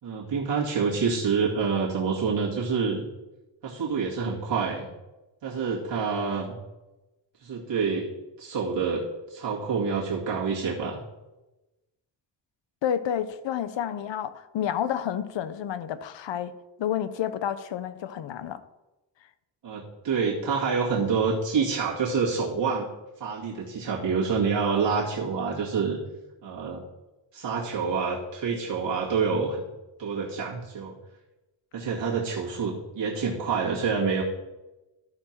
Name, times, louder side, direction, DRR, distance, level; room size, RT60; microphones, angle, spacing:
voice 1, 0.0-3.0 3.6-4.9 5.4-6.6 7.4-8.1 8.4-11.0 19.6-22.9 23.2-26.0 26.4-26.8 27.3-29.6 30.0-30.9 31.7-34.2, right 5 dB, 75° right, -6 dB, 2.2 m, -27 dB
voice 2, 12.8-16.5 16.8-18.6, left 9 dB, 80° left, 13 dB, 0.8 m, -30 dB
13.0 x 4.7 x 5.9 m, 1.0 s
wide cardioid pair, 140°, 44 cm